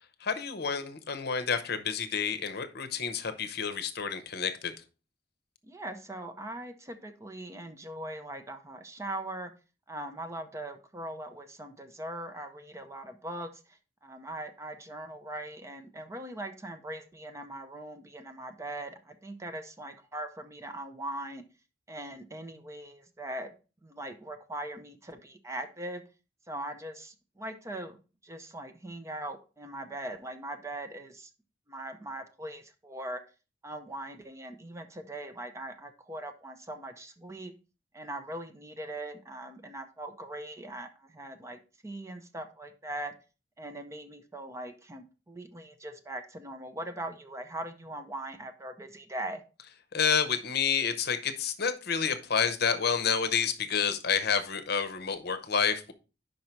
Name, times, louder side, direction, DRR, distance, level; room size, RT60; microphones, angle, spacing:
voice 1, 0.2-4.7 49.9-55.9, left 6 dB, 60° left, 11 dB, 0.8 m, -29 dB
voice 2, 5.6-9.5 9.9-21.4 21.9-23.5 23.8-26.0 26.5-28.0 28.2-31.3 31.7-33.2 33.6-37.5 37.9-43.1 43.6-49.4, right 1 dB, 15° right, 7 dB, 0.6 m, -40 dB
5.5 x 5.3 x 4.5 m, 0.33 s
head